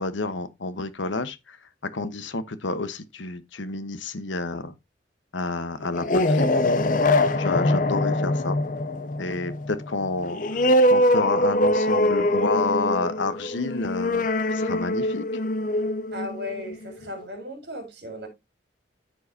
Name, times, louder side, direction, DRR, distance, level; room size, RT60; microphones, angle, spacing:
voice 1, 0.0-1.6 1.9-4.7 5.3-6.5 7.4-8.6 9.2-10.6 10.9-15.2, left 3 dB, 85° left, 1.1 m, -29 dB
sound 1, 5.8-17.0, left 1 dB, 45° left, 0.5 m, -23 dB
voice 2, 16.1-18.3, left 1 dB, 60° right, 4.0 m, -36 dB
13.5 x 4.7 x 2.7 m
head